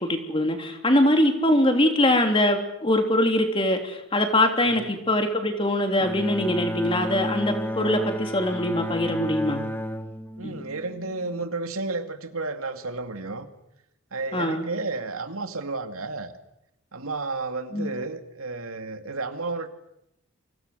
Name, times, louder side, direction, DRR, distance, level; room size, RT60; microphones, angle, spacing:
voice 1, 0.0-9.6 10.4-10.6 14.3-14.7 17.7-17.9, left 1 dB, 25° left, 5 dB, 3.3 m, -23 dB
Bowed string instrument, 6.0-11.4, equal, 10° left, 1.4 m, -32 dB
voice 2, 10.4-13.5 14.1-16.3 16.9-19.7, right 3 dB, 85° right, 7 dB, 2.6 m, -32 dB
30.0 x 25.0 x 6.8 m, 0.83 s
head